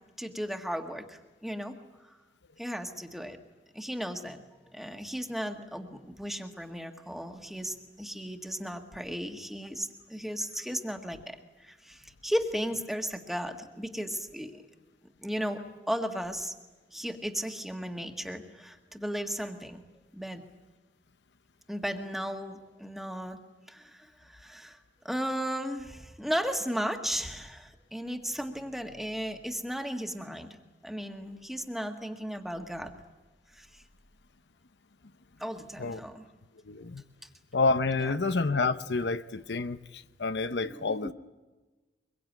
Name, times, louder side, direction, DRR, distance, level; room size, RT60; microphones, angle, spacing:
voice 1, 0.2-1.8 2.6-3.4 3.7-4.4 4.7-14.6 15.2-15.6 15.9-16.5 16.9-19.8 20.1-20.4 21.7-23.4 23.7-24.8 25.0-30.6 30.8-32.9 33.5-33.7 35.4-36.2 38.0-38.1 40.6-41.1, equal, ahead, 1.7 m, -35 dB
voice 2, 36.7-37.0 37.5-41.1, left 3 dB, 80° left, 0.8 m, -29 dB
24.0 x 22.5 x 9.2 m
head